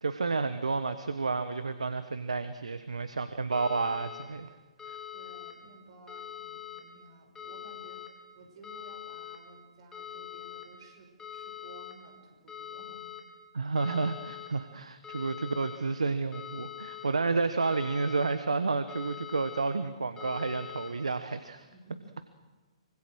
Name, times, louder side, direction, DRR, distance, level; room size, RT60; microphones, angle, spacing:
voice 1, 0.0-4.5 4.9-5.0 13.5-21.7, right 4 dB, 80° right, 11 dB, 1.3 m, -31 dB
sound 1, 3.5-4.2 4.8-5.5 6.1-6.8 7.4-8.1 8.6-9.4 9.9-10.6 11.2-11.9 12.5-13.2 13.8-14.5 15.0-15.8 16.3-17.1 17.6-18.3 18.9-19.6 20.2-20.9, left 9 dB, 15° left, 4.6 m, -43 dB
voice 2, 5.1-8.0 8.3-13.1 21.6-22.1, right 2 dB, 55° right, 5 dB, 6.2 m, -54 dB
25.0 x 25.0 x 6.4 m, 1.2 s
figure-of-eight pair, 125°, 3 cm